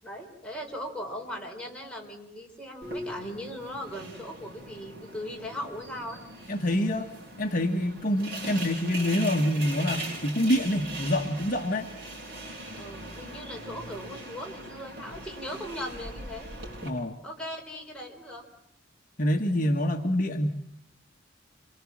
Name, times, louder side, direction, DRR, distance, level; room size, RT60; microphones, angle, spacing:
voice 1, 0.0-6.2 8.4-8.6 12.7-16.5 17.2-18.4, equal, 5° left, 0 dB, 4.4 m, -39 dB
sound 1, 2.8-16.9, right 1 dB, 55° right, 7.8 m, -40 dB
voice 2, 6.5-7.1 7.4-11.9 16.8-17.2 19.2-20.5, left 1 dB, 45° left, 3 dB, 1.5 m, -26 dB
26.5 x 23.5 x 7.5 m, 0.77 s
head